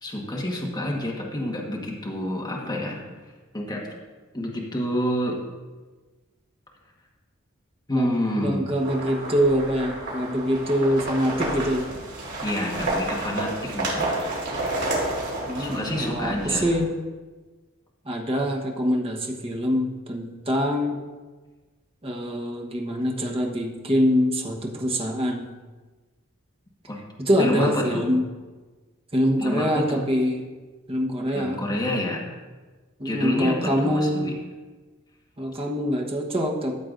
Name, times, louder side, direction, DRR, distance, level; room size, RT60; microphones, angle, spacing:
voice 1, 0.0-3.1 3.5-3.9 4.3-5.4 7.9-8.7 12.4-14.1 15.6-16.7 26.9-27.0 27.4-28.0 29.4-30.0 31.3-32.2 33.0-34.3, left 1 dB, 20° left, -2 dB, 1.3 m, -28 dB
voice 2, 8.4-11.9 15.5-16.9 18.0-21.0 22.0-25.5 27.2-28.2 29.1-30.4 30.9-31.6 33.0-34.3 35.4-36.8, equal, 30° right, 1 dB, 1.1 m, -24 dB
sound 1, 8.8-16.8, right 2 dB, 55° right, 3.0 m, -30 dB
13.5 x 7.9 x 2.6 m, 1.3 s
head